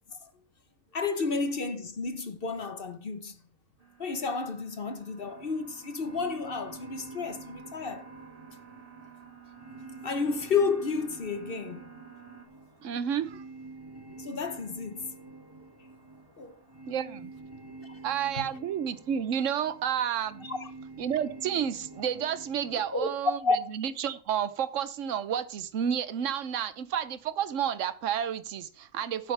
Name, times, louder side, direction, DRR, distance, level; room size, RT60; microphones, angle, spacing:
voice 1, 0.9-3.4 4.0-8.1 10.0-11.9 14.2-15.2 16.4-16.6 17.8-18.0 18.3-18.5 20.4-20.7 22.7-23.1 23.4-23.6, left 4 dB, 45° left, 1.2 m, -31 dB
sound 1, 3.8-12.5, right 7 dB, 40° right, 2.4 m, -52 dB
sound 2, 5.2-23.1, right 3 dB, 15° right, 1.8 m, -48 dB
voice 2, 12.8-13.4 16.9-17.3 18.0-20.5 21.0-29.3, right 8 dB, 65° right, 1.1 m, -31 dB
11.5 x 9.7 x 3.4 m
omnidirectional pair, 1.4 m